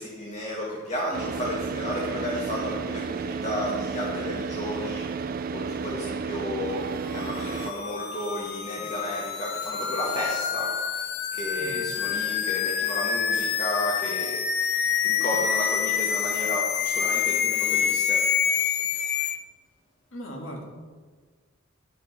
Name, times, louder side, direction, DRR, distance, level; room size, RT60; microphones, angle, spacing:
voice 1, 0.0-11.0 11.3-14.7 15.0-18.2, left 1 dB, 35° left, -3 dB, 1.5 m, -33 dB
Car / Idling, 1.1-7.7, right 5 dB, 45° right, 0.4 m, -32 dB
sound 1, 7.1-19.4, left 8 dB, 55° left, 0.6 m, -27 dB
voice 2, 11.6-11.9 20.1-20.6, equal, 75° left, 1 dB, 1.8 m, -38 dB
10.5 x 6.5 x 5.4 m, 1.4 s
head